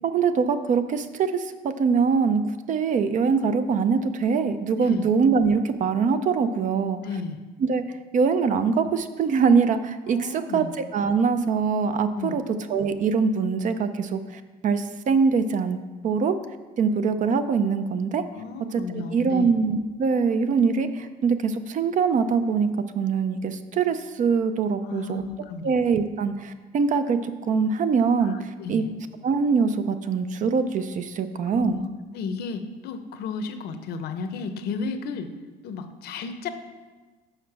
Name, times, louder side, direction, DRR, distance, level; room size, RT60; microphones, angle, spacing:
voice 1, 0.0-2.4 2.7-7.0 7.6-7.8 8.1-10.7 10.9-12.4 12.7-15.8 16.0-16.4 16.8-18.2 18.7-22.7 22.9-25.2 25.6-28.8 29.2-31.9, right 5 dB, 50° right, 10 dB, 0.5 m, -23 dB
voice 2, 4.8-5.1 7.0-7.4 10.1-10.7 12.2-12.4 18.3-19.5 24.8-25.7 28.2-28.3 28.6-28.9 31.5-31.9 32.1-35.3 35.6-36.5, left 4 dB, 70° left, 9 dB, 0.7 m, -33 dB
6.5 x 5.1 x 6.0 m, 1.3 s
cardioid pair, 110°, 17 cm